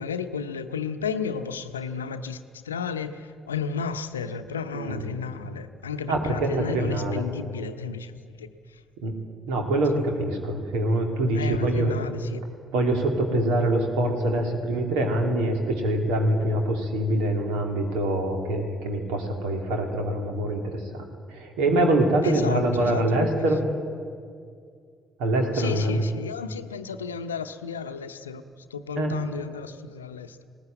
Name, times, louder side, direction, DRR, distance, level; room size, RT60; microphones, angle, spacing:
voice 1, 0.0-8.8 9.6-9.8 11.3-12.4 22.2-23.5 25.5-28.4 28.7-30.4, left 6 dB, 85° left, 10 dB, 0.7 m, -33 dB
voice 2, 4.7-5.1 6.1-7.2 9.0-9.2 9.5-12.0 12.7-23.6 25.2-26.0 28.9-29.2, right 1 dB, 70° right, 3 dB, 2.8 m, -24 dB
19.5 x 18.5 x 9.0 m, 2.2 s
figure-of-eight pair, 45°, 0 cm